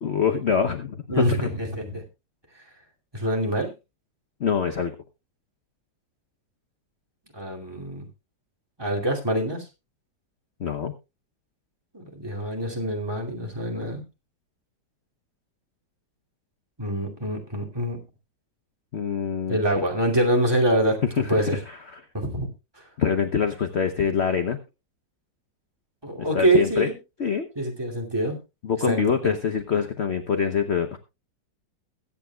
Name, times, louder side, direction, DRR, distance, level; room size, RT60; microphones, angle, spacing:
voice 1, 0.0-1.5 4.4-4.9 10.6-10.9 18.9-19.6 21.0-22.0 23.0-24.6 26.3-26.9 27.2-27.5 28.6-31.0, left 6 dB, 50° left, 8 dB, 0.9 m, -25 dB
voice 2, 1.1-2.0 3.1-3.7 7.4-8.0 8.8-9.7 11.9-14.0 16.8-18.0 19.5-21.0 21.3-21.6 22.1-22.5 26.0-27.0 27.6-28.4 28.9-29.3, right 1 dB, 15° right, 0 dB, 2.6 m, -25 dB
22.0 x 8.6 x 2.3 m, 0.26 s
omnidirectional pair, 1.9 m